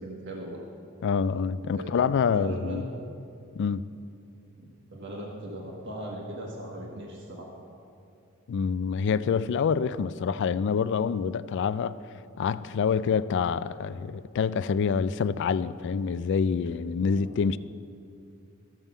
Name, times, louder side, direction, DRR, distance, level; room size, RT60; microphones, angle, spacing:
voice 1, 0.0-0.6 1.7-2.9 4.6-7.5 17.1-17.3, right 1 dB, 60° right, -2 dB, 1.4 m, -39 dB
voice 2, 1.0-2.8 3.5-3.8 8.5-12.0 12.4-17.6, left 6 dB, 60° left, 16 dB, 0.3 m, -26 dB
13.5 x 5.5 x 7.1 m, 2.6 s
head